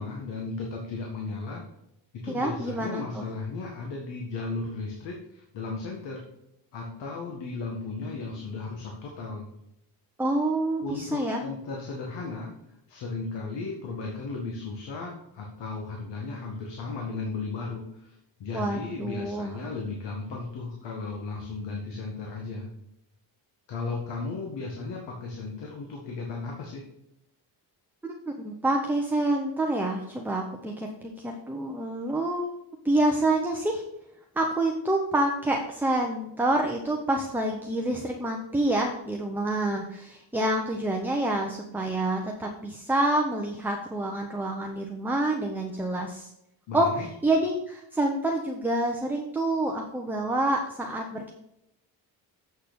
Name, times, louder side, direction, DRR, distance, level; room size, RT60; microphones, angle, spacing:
voice 1, 0.0-1.6 2.1-6.2 6.7-9.5 10.8-12.5 12.9-22.7 23.7-26.9 46.7-47.1, left 3 dB, 80° left, -1 dB, 1.9 m, -35 dB
voice 2, 2.3-3.2 10.2-11.4 18.5-19.6 28.0-32.5 32.8-33.8 34.4-46.3 46.7-46.9 47.2-51.3, right 1 dB, 5° right, 1 dB, 0.8 m, -27 dB
8.0 x 6.5 x 5.2 m, 0.81 s
cardioid pair, 160°, 42 cm